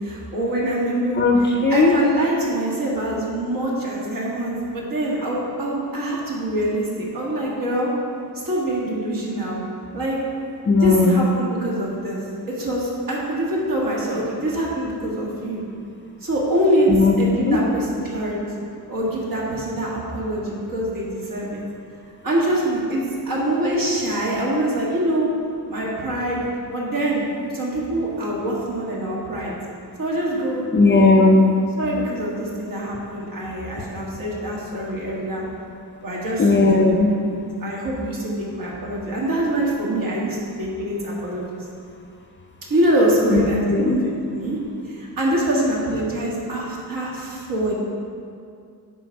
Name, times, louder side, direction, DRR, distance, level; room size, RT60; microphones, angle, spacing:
voice 1, 0.0-1.3 1.7-7.9 8.4-9.6 9.9-10.2 10.8-12.2 12.5-15.6 16.2-16.9 17.2-21.6 22.2-25.3 25.7-26.4 26.7-27.2 27.5-29.5 30.0-31.1 31.8-35.4 36.0-36.7 37.2-41.6 42.7-44.6 44.9-47.7, right 1 dB, 55° right, -4 dB, 2.0 m, -24 dB
voice 2, 1.2-1.9 10.7-11.2 16.9-17.1 17.4-17.6 30.7-31.5 36.4-37.2 43.3-44.0, left 3 dB, 30° left, 2 dB, 0.6 m, -16 dB
10.5 x 4.2 x 4.6 m, 2.4 s
wide cardioid pair, 140°, 39 cm